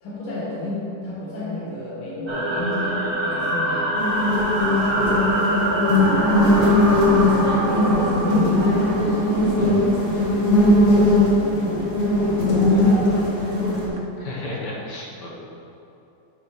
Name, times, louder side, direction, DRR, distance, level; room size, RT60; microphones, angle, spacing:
voice 1, 0.0-4.0 4.6-9.9 10.3-10.9 11.3-11.9 12.7-13.8, left 2 dB, 85° left, -6 dB, 2.3 m, -33 dB
sound 1, 2.3-10.3, right 1 dB, 35° right, 1.0 m, -25 dB
sound 2, 3.9-13.9, left 1 dB, 40° left, 2.3 m, -19 dB
sound 3, 7.3-14.0, equal, 75° right, 0.7 m, -33 dB
voice 2, 14.2-15.3, left 2 dB, 55° left, -4 dB, 2.0 m, -32 dB
11.5 x 6.3 x 3.2 m, 2.9 s
omnidirectional pair, 2.3 m